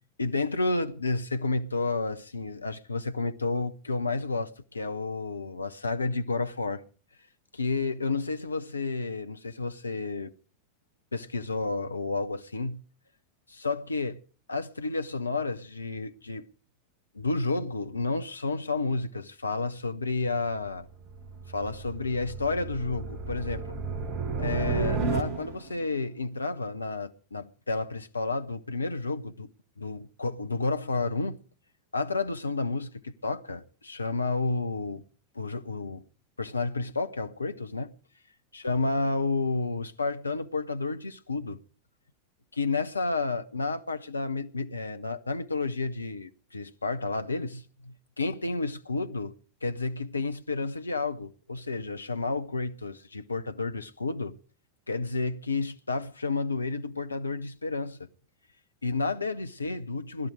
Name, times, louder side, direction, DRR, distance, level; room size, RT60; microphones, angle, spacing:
voice 1, 0.2-6.8 7.5-10.3 11.1-12.8 13.5-14.2 14.5-16.5 17.1-20.9 21.5-23.8 24.4-29.5 29.8-31.4 31.9-35.0 35.3-36.0 36.4-37.9 38.5-41.6 42.5-49.3 49.6-54.4 54.9-58.1 58.8-60.3, left 3 dB, 80° left, 0.9 m, -31 dB
sound 1, 20.6-25.8, right 4 dB, 40° right, 1.8 m, -33 dB
20.0 x 12.5 x 5.0 m
figure-of-eight pair, 90°, 0 cm